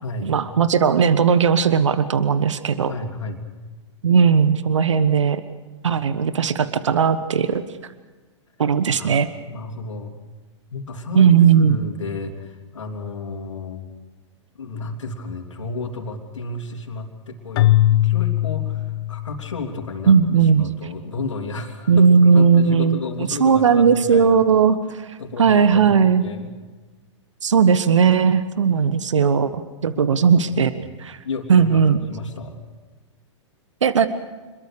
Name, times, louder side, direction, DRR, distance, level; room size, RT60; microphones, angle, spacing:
voice 1, 0.2-2.9 4.0-5.4 5.8-7.6 8.6-9.3 11.1-11.8 20.1-20.7 21.9-23.0 23.4-26.2 27.4-30.7 31.0-31.2 31.5-32.0 33.8-34.1, right 6 dB, 75° right, 13 dB, 1.3 m, -17 dB
voice 2, 2.8-3.4 8.9-10.2 10.7-13.9 14.5-24.4 25.2-25.9 26.2-26.5 29.9-30.2 30.8-30.9 31.2-32.6, left 3 dB, 75° left, 5 dB, 3.4 m, -32 dB
Keyboard (musical), 17.6-19.8, left 14 dB, 50° left, 1.0 m, -20 dB
27.5 x 22.0 x 6.8 m, 1.3 s
figure-of-eight pair, 110°, 16 cm